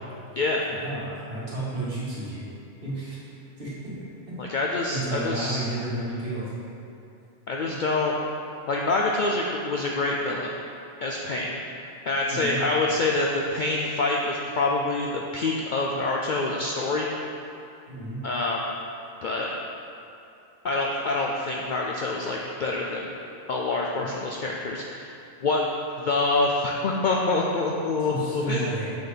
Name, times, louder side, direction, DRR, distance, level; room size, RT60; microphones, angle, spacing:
voice 1, 0.8-2.4 2.8-3.9 4.3-4.4 4.9-6.5 7.6-7.8 12.3-12.6 17.9-18.2 24.0-24.1 28.0-28.9, right 2 dB, 45° right, -9 dB, 2.0 m, -32 dB
voice 2, 4.4-5.6 7.5-8.1 8.7-10.6 11.0-11.6 12.1-17.1 18.2-18.6 19.2-19.5 20.6-23.1 23.5-25.1 25.4-25.6 26.0-28.7, left 3 dB, 60° left, -1 dB, 0.5 m, -26 dB
6.7 x 4.1 x 5.0 m, 2.6 s
omnidirectional pair, 1.2 m